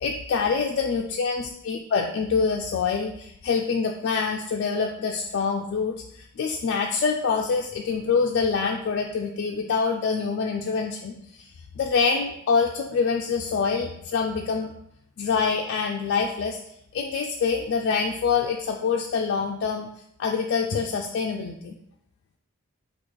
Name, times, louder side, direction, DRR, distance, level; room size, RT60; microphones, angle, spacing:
voice 1, 0.0-11.5 11.8-14.7 15.2-16.6 16.9-19.9 20.2-21.7, left 5 dB, 50° left, 1 dB, 0.3 m, -25 dB
4.3 x 2.4 x 4.6 m, 0.73 s
head